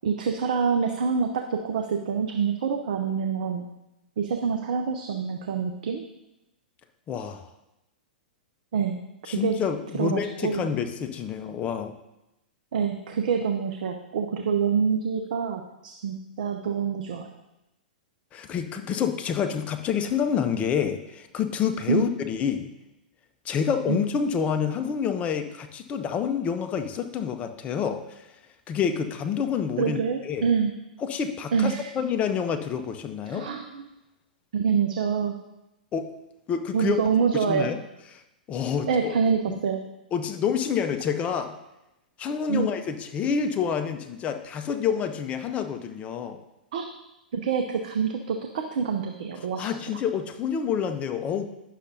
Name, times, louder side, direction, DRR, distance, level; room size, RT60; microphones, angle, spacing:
voice 1, 0.0-3.7 4.2-6.0 8.7-9.0 9.4-9.6 9.9-10.6 12.7-17.3 21.9-22.0 23.9-24.0 29.8-30.7 31.5-31.8 33.3-33.9 34.5-35.4 36.7-37.7 38.9-39.8 42.5-42.7 46.7-46.9 47.3-49.7, right 6 dB, 60° right, 5 dB, 0.6 m, -26 dB
voice 2, 7.1-7.5 9.3-11.9 18.3-22.7 23.4-28.3 28.7-30.5 31.0-33.5 35.9-36.1 36.5-37.0 37.5-37.8 38.1-38.2 38.5-39.1 39.5-39.6 40.1-41.6 42.2-46.4 49.6-51.5, left 7 dB, 25° left, 8 dB, 0.7 m, -28 dB
9.8 x 6.6 x 2.7 m, 0.93 s
figure-of-eight pair, 105°, 5 cm